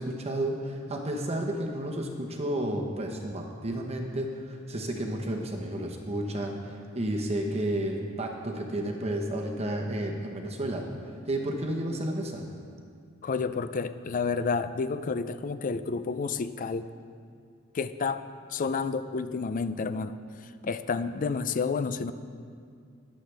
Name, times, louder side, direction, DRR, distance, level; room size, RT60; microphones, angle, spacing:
voice 1, 0.0-12.4, right 1 dB, 30° right, 1 dB, 1.0 m, -32 dB
voice 2, 13.2-16.9 17.7-18.2 18.5-20.1 20.4-22.1, left 4 dB, 40° left, 12 dB, 0.4 m, -30 dB
21.0 x 7.5 x 3.4 m, 2.3 s
head